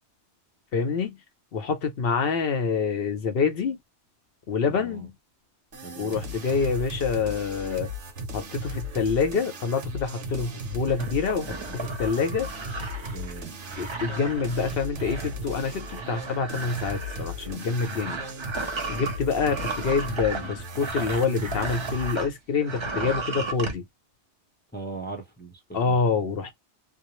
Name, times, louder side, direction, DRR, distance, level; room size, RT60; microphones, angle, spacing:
voice 1, 0.7-1.2 1.5-3.8 4.5-5.1 6.0-7.9 8.3-12.5 13.8-18.2 18.9-23.8 25.7-26.5, left 5 dB, 60° left, 0.8 m, -26 dB
voice 2, 4.6-5.0 5.8-6.2 13.1-13.5 24.7-26.0, right 3 dB, 10° left, 0.6 m, -39 dB
sound 1, 5.7-22.2, left 1 dB, 85° right, 1.2 m, -37 dB
sound 2, 10.9-22.3 22.6-23.7, right 3 dB, 35° right, 0.5 m, -35 dB
2.6 x 2.0 x 2.9 m
omnidirectional pair, 1.2 m